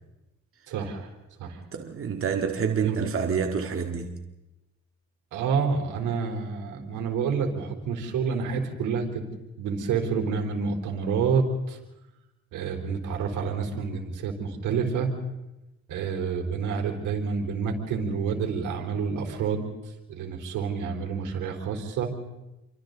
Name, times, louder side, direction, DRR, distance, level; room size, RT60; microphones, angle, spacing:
voice 1, 0.7-1.1 1.4-1.6 2.8-3.0 5.3-9.2 9.6-11.8 12.5-15.1 15.9-19.7 20.1-22.1, right 5 dB, 85° right, 3.9 m, -28 dB
voice 2, 1.7-4.2, right 6 dB, 45° right, 2.1 m, -28 dB
28.5 x 24.5 x 4.0 m
cardioid pair, 90°, 30 cm